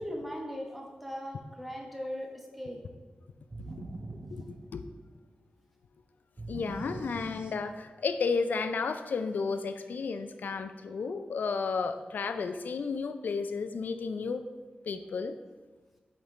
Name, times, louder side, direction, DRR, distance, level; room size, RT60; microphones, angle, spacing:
voice 1, 0.0-2.8, equal, 5° right, 0 dB, 1.0 m, -39 dB
sound 1, 3.5-5.2 6.4-8.0, right 2 dB, 35° right, 0.5 m, -43 dB
voice 2, 4.3-4.8 6.5-14.4 14.9-15.3, left 4 dB, 90° left, 9 dB, 0.4 m, -32 dB
6.9 x 5.2 x 3.2 m, 1.3 s
wide cardioid pair, 120°, 3 cm